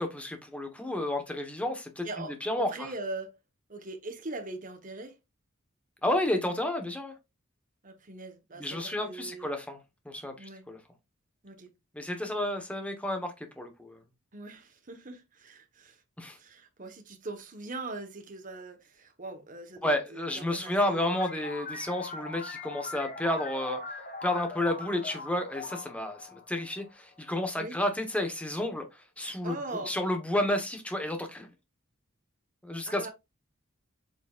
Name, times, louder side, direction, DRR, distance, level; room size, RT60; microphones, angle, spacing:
voice 1, 0.0-2.9 6.0-7.1 8.6-9.8 10.0-10.8 11.9-14.0 16.2-16.4 19.8-23.8 24.2-28.8 29.2-31.5 32.6-33.1, left 1 dB, 5° left, 1.2 m, -31 dB
voice 2, 2.0-3.3 3.7-5.1 7.8-9.5 10.4-10.6 11.4-11.7 14.3-16.0 16.4-21.1 27.6-27.8 29.4-29.9 32.8-33.1, right 2 dB, 35° right, 1.3 m, -41 dB
sound 1, 21.0-27.2, left 4 dB, 45° left, 1.9 m, -41 dB
8.0 x 5.1 x 2.5 m
head